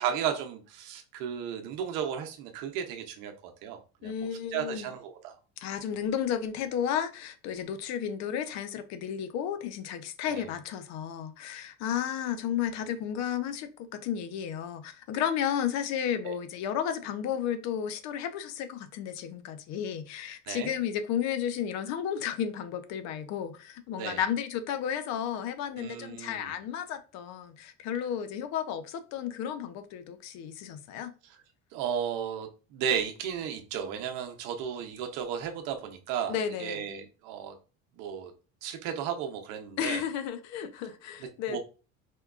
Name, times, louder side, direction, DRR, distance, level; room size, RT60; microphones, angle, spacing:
voice 1, 0.0-5.3 10.3-10.5 16.2-16.4 20.5-20.7 24.0-24.2 25.8-26.5 31.7-37.5 38.0-38.3 38.6-40.0 41.5-41.6, right 8 dB, 75° right, 0.7 m, -34 dB
voice 2, 4.0-4.9 5.6-31.1 36.3-36.9 39.8-41.6, left 9 dB, 60° left, 0.5 m, -33 dB
4.4 x 2.2 x 2.4 m
cardioid pair, 140°, 31 cm